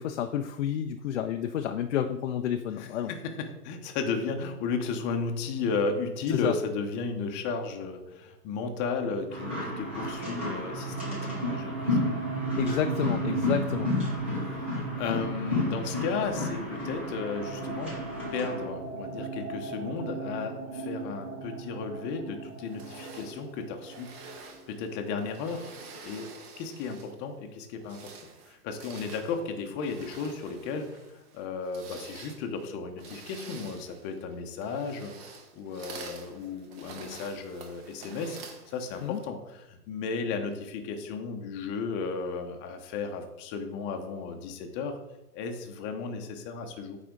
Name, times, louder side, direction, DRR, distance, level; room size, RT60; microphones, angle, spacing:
voice 1, 0.0-3.1 6.3-6.5 12.6-13.9 39.0-39.2, left 9 dB, 50° left, 6 dB, 0.5 m, -30 dB
voice 2, 2.8-12.0 14.3-17.9 18.3-24.4 24.7-25.8 26.0-26.3 26.6-28.1 28.5-31.0 31.3-45.0 45.3-47.0, left 5 dB, 25° left, 5 dB, 0.8 m, -34 dB
sound 1, 9.0-24.6, right 4 dB, 55° right, 1.2 m, -37 dB
sound 2, 9.3-18.6, left 2 dB, 10° right, 0.3 m, -33 dB
sound 3, 22.7-27.2 27.7-39.2, right 4 dB, 35° right, 1.3 m, -48 dB
8.6 x 4.2 x 3.9 m, 0.95 s
hypercardioid pair, 125°, 47 cm